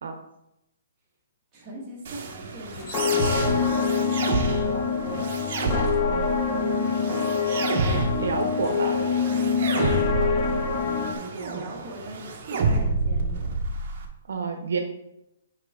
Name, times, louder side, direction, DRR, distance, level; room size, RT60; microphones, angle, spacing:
voice 1, 1.5-4.1 4.6-6.6 10.6-13.6 14.7-14.8, right 1 dB, 15° right, -5 dB, 1.9 m, -41 dB
sound 1, 2.0-14.0, right 3 dB, 40° right, 1.1 m, -29 dB
sound 2, 2.7-11.1, left 6 dB, 20° left, 0.7 m, -25 dB
voice 2, 8.2-9.0 14.3-14.8, right 4 dB, 75° right, 5 dB, 0.8 m, -28 dB
7.4 x 5.0 x 3.7 m, 0.84 s
hypercardioid pair, 170°, 0 cm